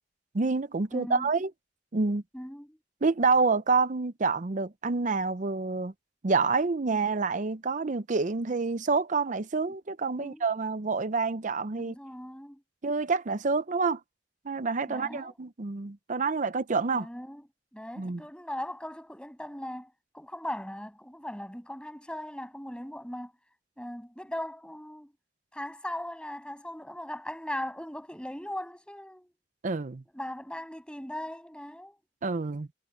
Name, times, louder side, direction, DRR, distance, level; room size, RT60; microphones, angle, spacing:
voice 1, 0.3-1.5 1.9-2.2 3.0-5.9 6.2-12.0 12.8-14.0 14.4-17.1 18.0-18.2 29.6-30.0 32.2-32.7, right 4 dB, 45° right, 0.6 m, -28 dB
voice 2, 0.9-1.3 2.3-2.8 6.9-7.0 10.2-10.5 11.8-12.6 14.9-15.3 16.9-17.5 17.7-23.3 23.8-25.1 25.5-29.3 30.1-32.0, left 1 dB, 5° left, 7.6 m, -39 dB
head